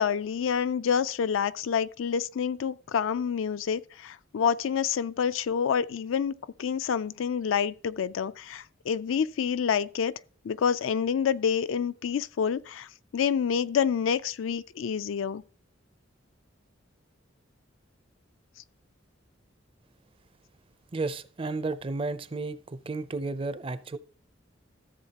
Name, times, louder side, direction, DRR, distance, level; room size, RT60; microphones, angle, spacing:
voice 1, 0.0-6.3 6.6-10.1 10.4-15.4, left 7 dB, 80° left, 0.4 m, -28 dB
voice 2, 20.9-24.0, right 3 dB, 30° right, 0.5 m, -33 dB
13.5 x 7.2 x 2.9 m
head